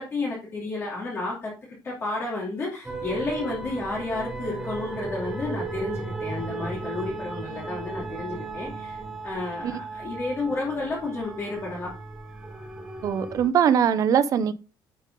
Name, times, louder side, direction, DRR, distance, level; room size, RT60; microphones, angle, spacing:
voice 1, 0.0-1.5 1.8-11.9, left 2 dB, 25° left, 2.6 m, -31 dB
sound 1, 2.8-13.5, right 3 dB, 10° right, 1.1 m, -36 dB
voice 2, 13.0-14.5, right 8 dB, 40° right, 0.6 m, -21 dB
11.0 x 5.2 x 3.8 m
cardioid pair, 180°, 9 cm